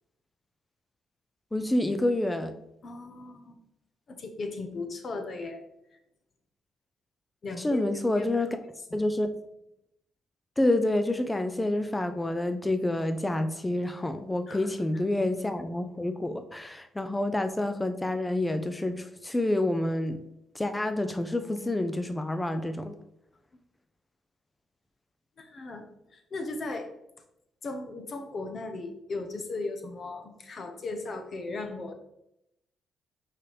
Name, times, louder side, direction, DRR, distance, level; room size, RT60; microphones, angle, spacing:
voice 1, 1.5-2.5 7.6-8.5 8.9-9.3 10.6-20.2 20.5-23.0, left 1 dB, 10° left, 8 dB, 0.5 m, -28 dB
voice 2, 2.8-3.6 4.1-5.6 5.9-6.0 7.4-7.9 8.2-8.5 8.9-9.0 14.5-14.7 25.4-25.8 26.1-26.9 27.6-31.9, left 3 dB, 45° left, 6 dB, 1.0 m, -37 dB
5.7 x 4.9 x 3.3 m, 0.83 s
cardioid pair, 90°, 0 cm